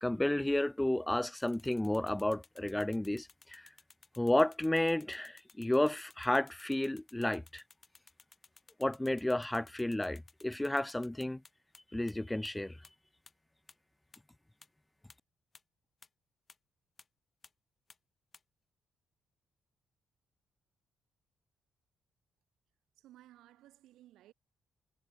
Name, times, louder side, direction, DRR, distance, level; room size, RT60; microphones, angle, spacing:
voice 1, 0.0-3.7 4.2-7.6 8.8-11.4 11.9-12.8, left 1 dB, 10° left, 0.5 m, -32 dB
sound 1, 1.4-11.8 12.1-12.2 12.4-12.5 12.8-12.9 13.3-13.4 13.7-13.8 14.1-14.2 14.6-14.7 15.1-15.2 15.5-15.6 16.0-16.1 16.5-16.6 17.0-17.1 17.4-17.5 17.9-18.0 18.3-18.4, left 4 dB, 35° left, 2.8 m, -58 dB
voice 2, 23.0-24.3, right 14 dB, 85° right, 4.5 m, -58 dB
cardioid pair, 90°, 0 cm